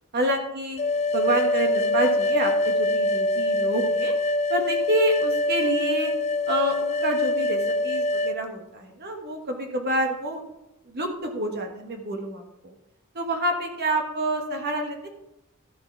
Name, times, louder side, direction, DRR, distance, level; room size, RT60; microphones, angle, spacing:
voice 1, 0.1-0.8 1.1-4.1 4.5-6.1 6.5-10.4 10.8-12.7 13.1-15.1, right 1 dB, 45° right, 3 dB, 1.5 m, -27 dB
sound 1, 0.8-8.4, left 2 dB, 30° left, 0.5 m, -24 dB
12.5 x 6.7 x 4.7 m, 0.89 s
head